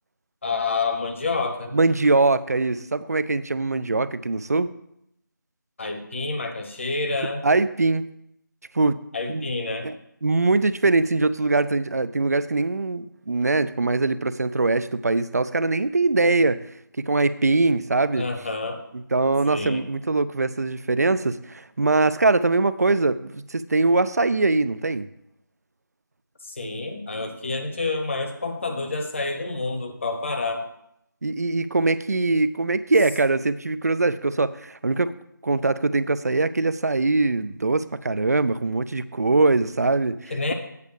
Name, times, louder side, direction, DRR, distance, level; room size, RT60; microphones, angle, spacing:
voice 1, 0.4-1.7 5.8-7.4 9.1-9.9 18.2-18.8 19.4-19.8 26.4-30.6 40.3-40.5, left 3 dB, 35° left, 5 dB, 1.1 m, -28 dB
voice 2, 1.7-4.7 7.4-8.0 8.7-9.0 9.3-9.4 9.8-9.9 10.2-16.6 17.0-18.3 18.9-25.1 31.2-35.1 35.4-40.5, right 3 dB, 50° right, 15 dB, 0.4 m, -22 dB
8.3 x 4.9 x 6.6 m, 0.77 s
figure-of-eight pair, 165°, 11 cm